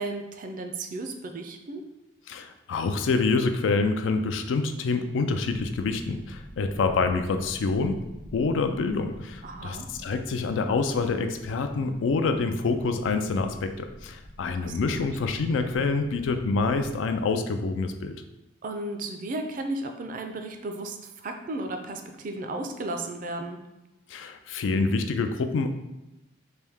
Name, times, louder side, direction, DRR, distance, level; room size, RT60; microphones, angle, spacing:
voice 1, 0.0-1.8 9.4-9.9 14.4-15.0 18.6-23.6, right 2 dB, 45° right, 5 dB, 0.4 m, -34 dB
voice 2, 2.3-8.0 8.3-18.1 24.1-25.7, left 4 dB, 90° left, 8 dB, 0.3 m, -26 dB
sound 1, 5.5-16.9, equal, 35° left, 0.6 m, -46 dB
3.3 x 2.6 x 3.5 m, 0.98 s
head